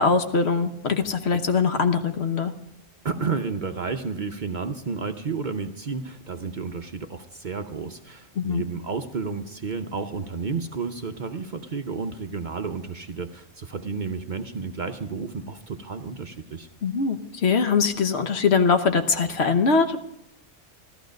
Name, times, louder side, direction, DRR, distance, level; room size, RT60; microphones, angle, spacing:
voice 1, 0.0-2.5 8.4-8.6 16.8-20.0, left 5 dB, 60° left, 8 dB, 1.2 m, -22 dB
voice 2, 3.0-16.7, right 4 dB, 45° right, 6 dB, 0.7 m, -31 dB
14.5 x 13.0 x 5.2 m, 0.83 s
omnidirectional pair, 1.3 m